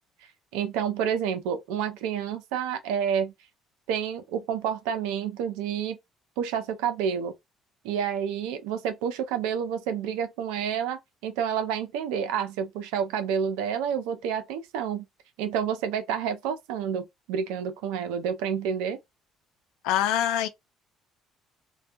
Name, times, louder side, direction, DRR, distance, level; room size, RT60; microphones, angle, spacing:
voice 1, 0.5-3.3 3.9-6.0 6.4-7.3 7.8-15.1 15.4-19.0, right 8 dB, 80° right, 0.5 m, -29 dB
voice 2, 19.8-20.5, left 11 dB, 75° left, 0.4 m, -24 dB
2.2 x 2.2 x 2.5 m
hypercardioid pair, 60°, 0 cm